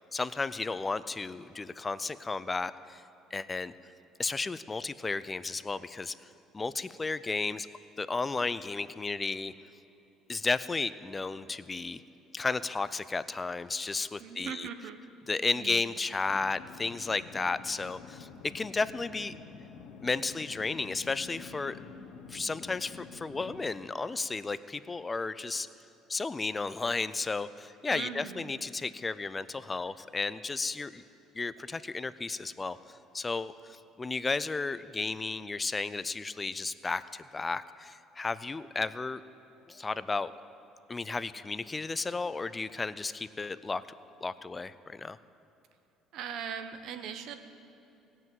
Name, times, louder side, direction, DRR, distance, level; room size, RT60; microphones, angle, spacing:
voice 1, 0.1-3.0 3.3-3.7 4.2-6.3 6.5-7.7 8.0-9.5 10.3-12.0 12.3-14.7 15.3-18.3 18.5-19.4 20.0-21.8 22.3-25.7 26.1-31.0 31.3-39.2 39.7-40.3 40.9-43.8 44.2-45.2, left 3 dB, 20° left, 15 dB, 0.4 m, -33 dB
voice 2, 14.2-15.0 15.5-15.8 27.9-28.6 46.1-47.3, right 8 dB, 65° right, 9 dB, 1.0 m, -40 dB
sound 1, 16.2-23.8, left 6 dB, 80° left, 1.1 m, -48 dB
16.5 x 6.0 x 9.2 m, 2.9 s
cardioid pair, 105°, 0 cm